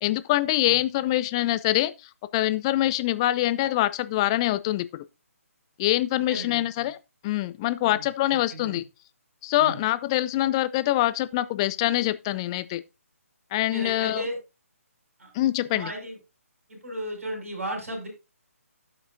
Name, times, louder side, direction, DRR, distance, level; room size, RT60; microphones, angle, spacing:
voice 1, 0.0-1.9 2.3-5.0 5.8-7.0 7.2-8.8 9.4-12.8 13.5-14.2 15.3-15.9, left 15 dB, 20° left, 0.4 m, -24 dB
voice 2, 6.1-6.9 7.8-8.8 9.6-9.8 13.7-14.4 15.2-15.3 15.7-16.2 16.7-18.1, right 1 dB, 60° right, 6.8 m, -35 dB
16.5 x 6.0 x 2.6 m
figure-of-eight pair, 145°, 8 cm